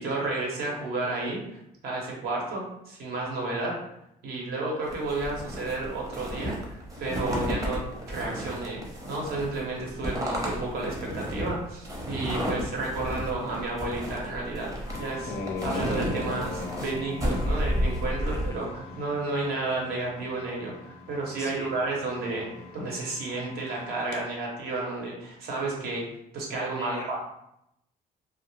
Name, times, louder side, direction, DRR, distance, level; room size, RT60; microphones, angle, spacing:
voice 1, 0.0-1.4 1.8-3.8 4.2-6.6 7.0-7.8 8.1-8.8 9.1-14.7 15.0-15.3 15.6-22.5 22.7-26.0 26.3-27.2, right 2 dB, 70° right, -2 dB, 0.9 m, -31 dB
sound 1, 4.9-18.5, equal, 20° right, 0.7 m, -32 dB
sound 2, 14.9-24.2, left 4 dB, 75° left, 0.6 m, -40 dB
voice 2, 21.4-21.8 26.8-27.2, left 1 dB, 15° left, 1 dB, 0.4 m, -41 dB
2.3 x 2.0 x 3.0 m, 0.81 s
cardioid pair, 110°, 17 cm